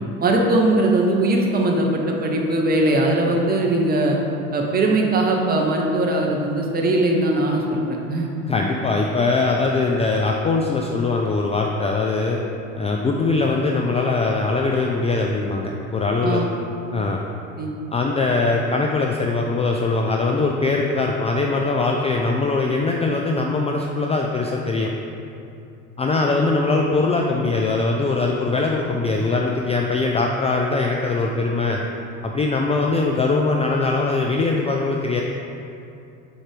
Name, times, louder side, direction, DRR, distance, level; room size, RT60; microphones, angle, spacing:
voice 1, 0.2-4.2 4.5-7.8 8.1-8.3 16.2-16.5 17.6-17.7 26.3-26.4, right 2 dB, 25° right, 0 dB, 0.9 m, -20 dB
voice 2, 8.5-12.4 12.8-16.4 16.9-17.2 17.9-24.9 26.0-31.8 32.2-35.2, left 3 dB, 15° left, 0 dB, 0.3 m, -21 dB
4.5 x 4.4 x 5.0 m, 2.6 s
hypercardioid pair, 75°, 38 cm